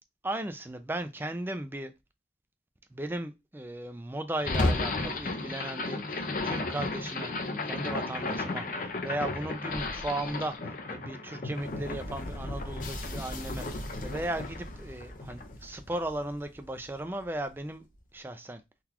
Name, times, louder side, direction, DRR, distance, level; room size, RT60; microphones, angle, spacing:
voice 1, 0.2-1.9 2.9-17.9 18.1-18.6, right 1 dB, 10° right, 0.3 m, -36 dB
sound 1, 4.4-16.6, left 2 dB, 45° left, 0.5 m, -34 dB
3.8 x 2.3 x 2.9 m
head